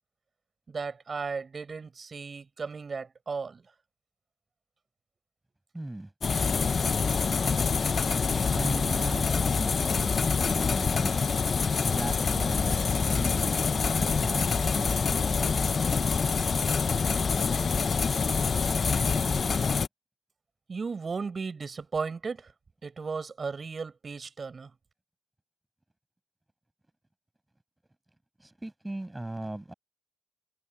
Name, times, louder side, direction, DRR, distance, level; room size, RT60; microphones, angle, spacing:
voice 1, 0.7-3.6 20.7-22.5 22.8-24.7, right 4 dB, 35° right, 7.0 m, -35 dB
voice 2, 5.7-6.1 8.5-11.3 11.8-13.7 13.9-15.4 28.4-29.7, right 1 dB, 10° right, 7.8 m, -38 dB
sound 1, 6.2-19.9, left 5 dB, 40° left, 0.7 m, -26 dB
cardioid pair, 90°, 0 cm